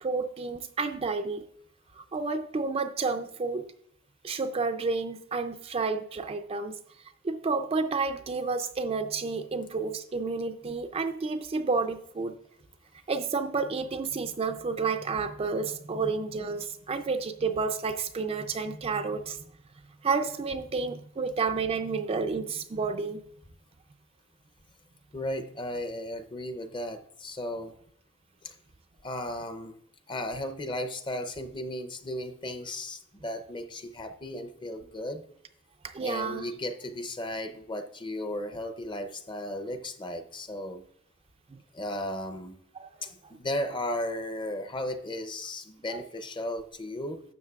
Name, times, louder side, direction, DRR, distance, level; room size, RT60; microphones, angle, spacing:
voice 1, 0.0-1.4 2.0-3.7 4.2-6.7 7.2-12.4 13.1-19.4 20.0-23.2 35.8-36.5 41.5-41.6 42.7-43.1 45.9-46.0, right 4 dB, 30° right, 7 dB, 0.4 m, -30 dB
voice 2, 25.1-27.7 28.4-28.5 29.0-29.8 30.1-35.2 36.0-40.8 41.7-42.6 43.0-47.2, left 1 dB, 25° left, 9 dB, 0.6 m, -35 dB
12.0 x 7.1 x 2.4 m, 0.69 s
head